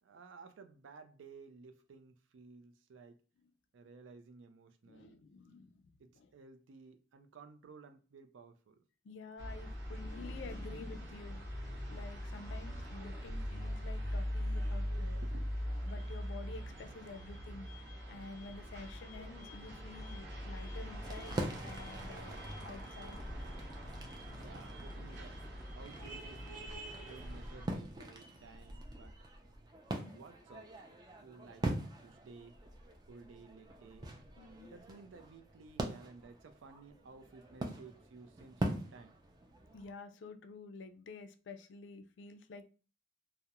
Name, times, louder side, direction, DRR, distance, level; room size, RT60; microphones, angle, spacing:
voice 1, 0.0-3.2 3.7-5.2 6.0-8.8 15.2-15.6 24.4-26.6 27.0-29.2 30.1-30.7 31.2-31.7 32.0-32.6 33.1-34.1 34.7-39.2, right 4 dB, 90° right, 0.4 m, -55 dB
voice 2, 4.9-6.3 9.0-15.2 15.9-17.7 18.1-23.3 29.9-30.2 34.4-34.7 39.7-42.7, left 3 dB, 75° left, 0.3 m, -50 dB
sound 1, 9.4-27.7, equal, 65° right, 0.8 m, -42 dB
sound 2, 21.0-39.9, right 1 dB, 20° right, 0.3 m, -43 dB
2.3 x 2.0 x 2.8 m
head